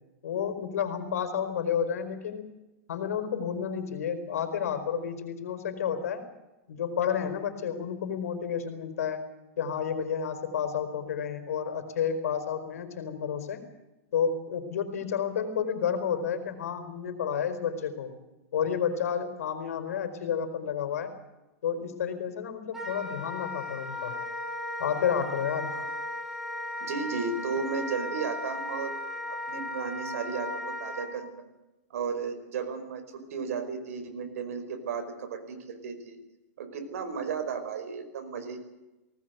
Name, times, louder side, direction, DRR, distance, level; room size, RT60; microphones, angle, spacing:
voice 1, 0.2-2.5 2.9-6.2 6.7-9.2 9.6-13.6 14.1-18.1 18.5-21.1 21.6-24.1 24.8-25.7, left 7 dB, 75° left, 9 dB, 4.8 m, -31 dB
Wind instrument woodwind instrument, 22.7-31.1, left 1 dB, 5° right, 3.4 m, -36 dB
voice 2, 26.8-29.0 29.3-31.3 31.9-36.2 36.6-38.6, right 5 dB, 70° right, 8 dB, 5.2 m, -34 dB
20.5 x 19.0 x 8.3 m, 1.0 s
supercardioid pair, 155°, 8 cm